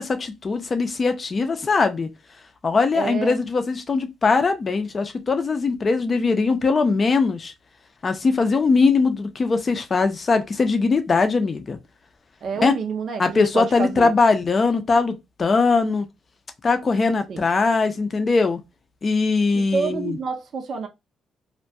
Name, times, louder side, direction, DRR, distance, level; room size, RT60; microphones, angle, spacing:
voice 1, 0.0-2.1 2.6-7.5 8.0-11.8 12.6-12.8 13.2-16.1 16.6-18.6 19.0-20.2, left 4 dB, 35° left, 0.5 m, -21 dB
voice 2, 2.9-3.3 12.4-14.1 17.3-17.4 19.5-20.9, right 5 dB, 55° right, 0.4 m, -28 dB
2.2 x 2.2 x 2.6 m
cardioid pair, 90°, 0 cm